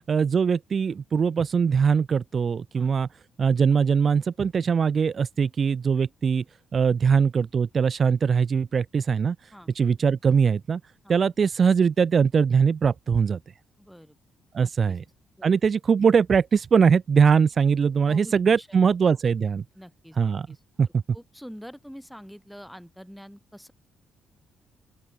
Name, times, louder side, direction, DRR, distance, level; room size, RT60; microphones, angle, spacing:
voice 1, 0.1-3.1 3.4-6.4 6.7-9.4 9.7-10.8 11.1-13.4 14.5-15.0 15.4-19.6 20.2-20.5 20.8-20.9, right 6 dB, 45° right, 0.5 m, -21 dB
voice 2, 13.8-14.2 14.6-15.0 15.4-15.5 18.1-18.9 19.8-20.2 20.5-20.6 21.1-23.7, equal, ahead, 5.2 m, -45 dB
open air
cardioid pair, 90°, 0 cm